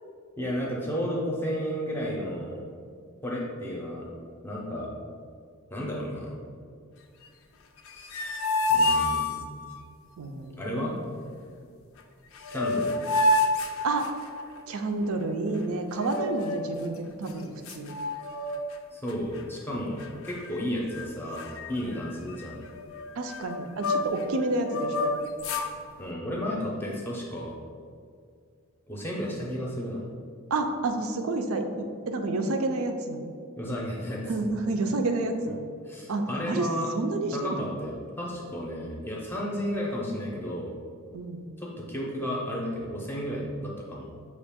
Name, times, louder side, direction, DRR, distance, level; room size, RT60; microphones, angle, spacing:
voice 1, 0.4-2.7 3.2-4.1 4.4-4.9 5.7-6.4 7.9-8.3 8.7-9.5 10.6-11.0 12.5-12.9 18.9-22.6 26.0-27.5 28.9-30.0 33.6-34.5 35.8-36.9 37.3-40.7 41.6-44.1, equal, 10° left, -3 dB, 0.5 m, -33 dB
sound 1, 7.8-9.8 12.0-12.1 12.3-14.6 15.9-16.7 17.3-17.4 17.7-18.8 19.1-19.4 20.0-20.6 20.9-21.1 21.4-24.2 24.6-25.7, left 2 dB, 75° left, 0.4 m, -28 dB
voice 2, 10.2-10.9 13.8-14.1 14.7-17.9 21.8-22.0 23.2-25.1 30.5-33.3 34.2-35.6 36.1-36.7 36.9-37.6 41.1-41.5, right 2 dB, 80° right, 6 dB, 0.4 m, -29 dB
5.9 x 2.4 x 3.5 m, 2.2 s
head